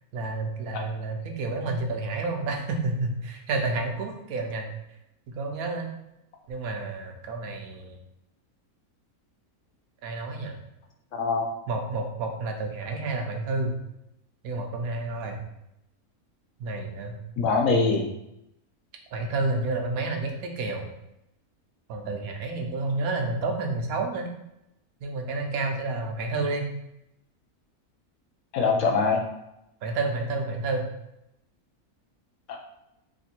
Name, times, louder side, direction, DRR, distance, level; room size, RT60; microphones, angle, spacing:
voice 1, 0.1-4.7 5.3-5.9 6.5-8.0 10.0-10.6 11.7-13.7 14.4-15.4 16.6-17.2 19.1-20.9 21.9-24.3 25.0-26.7 29.8-30.9, right 3 dB, 75° right, 3 dB, 1.1 m, -30 dB
voice 2, 11.1-11.4 17.4-18.1 28.5-29.2, left 4 dB, 65° left, 1 dB, 0.9 m, -23 dB
3.3 x 2.6 x 4.2 m, 0.84 s
omnidirectional pair, 1.5 m